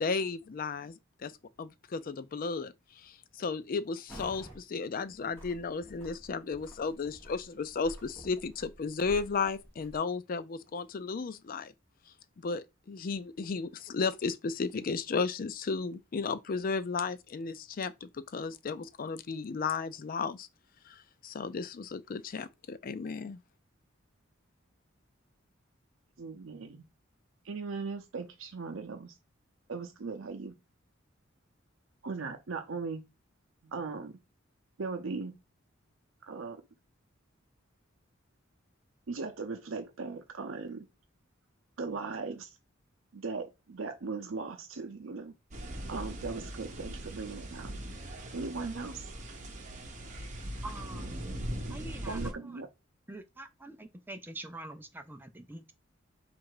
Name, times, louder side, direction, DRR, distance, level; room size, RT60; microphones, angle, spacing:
voice 1, 0.0-1.3 1.6-2.7 3.0-11.7 12.4-20.5 20.9-23.4, left 4 dB, 45° left, 0.4 m, -34 dB
sound 1, 4.1-4.6 5.0-10.0, equal, 10° left, 1.7 m, -50 dB
voice 2, 26.2-26.8 27.4-29.1 29.7-30.6 32.0-33.0 33.6-34.2 34.8-35.4 36.2-36.6 39.1-40.9 41.8-42.6 43.1-45.3 45.9-47.7 48.3-49.1 51.7-51.8 52.0-52.7, right 4 dB, 75° right, 0.6 m, -38 dB
sound 2, 45.5-52.3, right 1 dB, 40° right, 0.9 m, -40 dB
voice 3, 50.6-51.4 51.7-52.2 53.1-55.7, right 1 dB, 10° right, 0.5 m, -45 dB
4.2 x 2.5 x 4.7 m
head